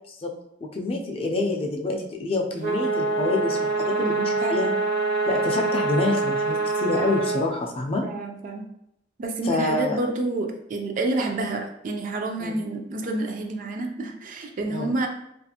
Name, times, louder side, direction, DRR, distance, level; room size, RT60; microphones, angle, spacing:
voice 1, 0.7-4.2 4.5-4.7 5.3-8.0 9.4-10.0 12.4-12.6 14.6-14.9, left 2 dB, 30° left, 1 dB, 0.4 m, -27 dB
sound 1, 2.6-7.4, right 3 dB, 65° right, 0.7 m, -25 dB
voice 2, 4.0-4.7 8.0-8.7 9.2-15.1, right 2 dB, 45° right, 3 dB, 0.3 m, -29 dB
2.4 x 2.4 x 2.7 m, 0.80 s
head